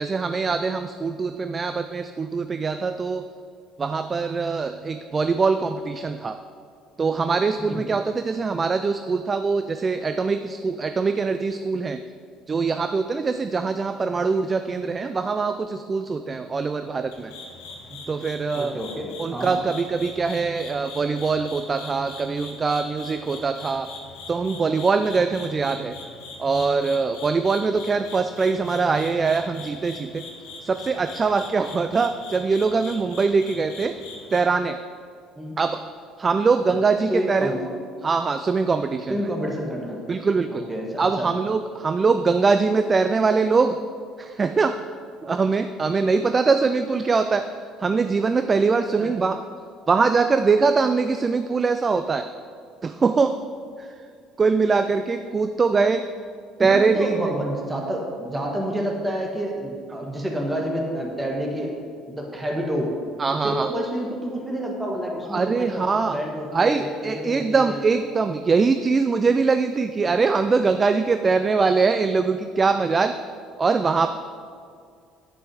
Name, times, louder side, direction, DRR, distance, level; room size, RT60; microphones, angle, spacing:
voice 1, 0.0-3.2 3.8-6.4 7.0-12.0 12.5-17.3 18.1-18.7 19.2-23.9 24.3-25.9 26.4-30.2 30.6-33.9 34.3-34.8 35.6-35.8 36.2-37.5 38.0-39.2 40.1-40.6 41.0-43.8 44.2-44.8 45.2-47.4 47.8-49.4 49.9-52.3 52.8-53.3 54.4-56.0 56.6-57.3 63.2-63.7 65.3-66.2 66.5-73.1 73.6-74.1, right 4 dB, 30° right, 9 dB, 0.4 m, -22 dB
voice 2, 7.6-8.0 16.8-16.9 17.9-18.0 18.5-19.6 35.3-35.5 36.7-36.8 37.1-37.6 39.1-40.2 40.5-41.3 49.0-49.2 56.6-61.7 62.1-62.9 63.3-67.9, equal, 15° right, -1 dB, 1.5 m, -29 dB
sound 1, 17.1-34.4, left 3 dB, 80° left, 1.9 m, -41 dB
9.5 x 5.5 x 6.2 m, 2.2 s
supercardioid pair, 85°, 0 cm